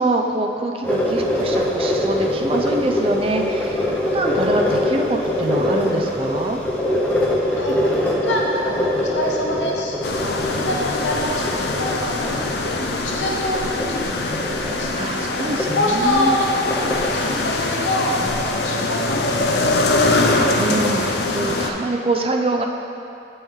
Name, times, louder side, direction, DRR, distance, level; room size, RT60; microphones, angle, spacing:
voice 1, 0.0-6.6 15.0-16.3 20.5-22.7, right 2 dB, 30° right, 3 dB, 0.4 m, -24 dB
sound 1, 0.8-17.6, left 1 dB, 10° left, 0.7 m, -24 dB
voice 2, 7.5-20.2, left 1 dB, 85° left, -2 dB, 1.0 m, -26 dB
sound 2, 10.0-21.7, left 2 dB, 65° left, 0.5 m, -23 dB
8.7 x 5.5 x 3.2 m, 2.6 s
head